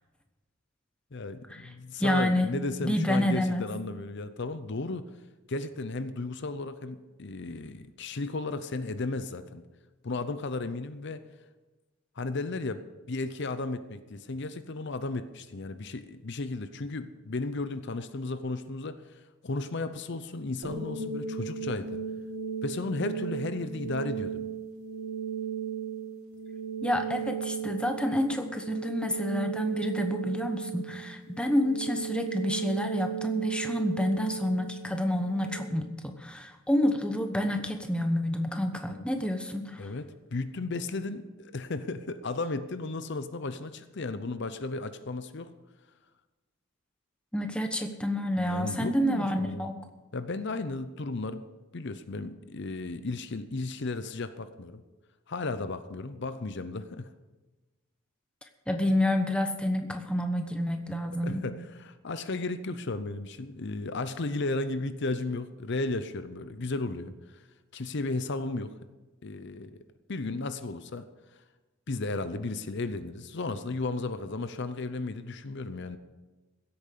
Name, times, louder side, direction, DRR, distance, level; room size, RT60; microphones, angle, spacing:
voice 1, 1.1-5.1 5.5-9.6 10.0-11.2 12.2-22.0 22.6-24.5 30.9-31.0 38.9-39.1 39.8-45.5 48.4-49.7 50.1-51.4 51.7-54.8 55.3-57.1 61.2-67.5 67.7-68.7 69.2-69.8 70.1-71.1 71.9-76.0, left 3 dB, 55° left, 11 dB, 0.7 m, -34 dB
voice 2, 2.0-2.5 2.8-3.6 26.8-39.9 47.3-49.8 58.7-61.4, left 1 dB, 5° left, 5 dB, 1.0 m, -28 dB
sound 1, 20.6-35.6, right 7 dB, 80° right, 2.3 m, -36 dB
16.0 x 8.8 x 6.7 m, 1.2 s
head